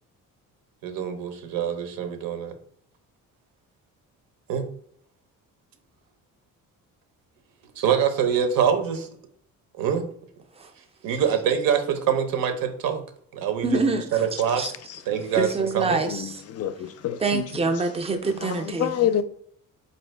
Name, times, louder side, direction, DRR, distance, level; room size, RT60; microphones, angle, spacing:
voice 1, 0.8-2.5 4.5-4.6 7.8-9.1 9.8-10.0 11.0-13.0 13.4-13.6 14.1-14.6 15.1-15.5 15.7-16.0, right 8 dB, 80° right, 0.8 m, -24 dB
voice 2, 13.6-14.7 15.3-16.4 17.2-18.9, right 3 dB, 20° right, 0.5 m, -26 dB
voice 3, 14.6-15.0 16.0-17.4 18.4-19.2, left 10 dB, 50° left, 0.4 m, -28 dB
4.3 x 2.6 x 3.2 m
cardioid pair, 135°, 34 cm